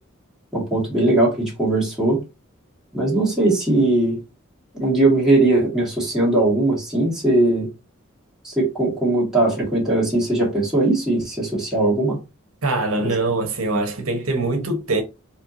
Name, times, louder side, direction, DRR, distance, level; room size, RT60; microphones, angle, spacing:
voice 1, 0.5-2.2 2.9-4.2 4.7-7.7 8.4-12.2 13.0-13.1, right 2 dB, ahead, 2.1 m, -19 dB
voice 2, 12.6-15.0, right 2 dB, 80° right, 1.2 m, -23 dB
4.4 x 3.4 x 2.7 m
head